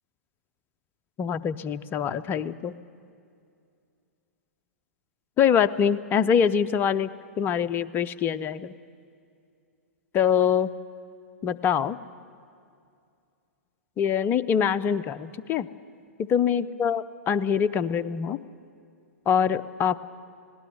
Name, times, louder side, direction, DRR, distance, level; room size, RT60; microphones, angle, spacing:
voice 1, 1.2-2.8 5.4-7.1 7.4-8.7 10.1-10.7 11.4-12.0 14.0-15.7 16.3-18.4 19.3-20.0, left 8 dB, 25° left, 13 dB, 0.6 m, -24 dB
19.0 x 17.5 x 9.5 m, 2.4 s
figure-of-eight pair, 105°, 8 cm